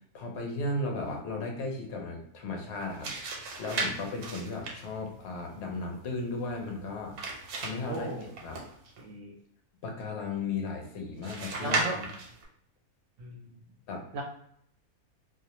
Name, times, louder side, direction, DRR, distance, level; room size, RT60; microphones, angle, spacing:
voice 1, 0.1-3.1 3.6-7.2 7.5-8.1 8.4-8.6 9.8-12.0 13.9-14.0, left 3 dB, 60° left, 1 dB, 0.7 m, -35 dB
sound 1, 2.7-9.0 11.2-12.5, right 3 dB, 85° right, 1.1 m, -37 dB
voice 2, 7.9-8.2 9.0-9.3 11.6-12.0 13.2-13.6 14.1-14.2, right 2 dB, 65° right, 0 dB, 0.8 m, -37 dB
2.5 x 2.1 x 2.8 m, 0.68 s
omnidirectional pair, 1.6 m